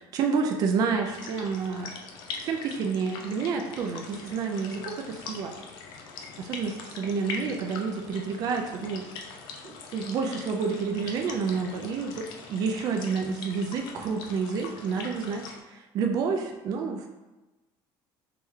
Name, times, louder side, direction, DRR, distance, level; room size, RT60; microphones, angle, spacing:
voice 1, 0.1-1.9 2.4-5.5 6.4-9.0 9.6-17.1, right 5 dB, 40° right, 3 dB, 0.4 m, -29 dB
sound 1, 1.0-15.6, left 4 dB, 50° left, 0.5 m, -42 dB
3.4 x 3.1 x 3.2 m, 1.1 s
cardioid pair, 170°, 10 cm